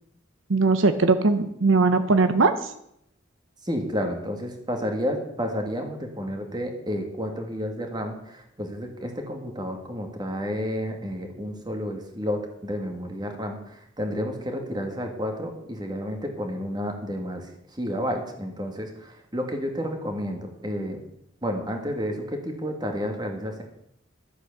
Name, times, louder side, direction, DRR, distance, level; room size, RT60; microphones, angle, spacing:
voice 1, 0.5-2.5, right 3 dB, 75° right, 9 dB, 0.8 m, -20 dB
voice 2, 3.6-21.0 21.4-23.6, equal, 20° right, 3 dB, 2.0 m, -31 dB
13.0 x 8.2 x 6.6 m, 0.76 s
head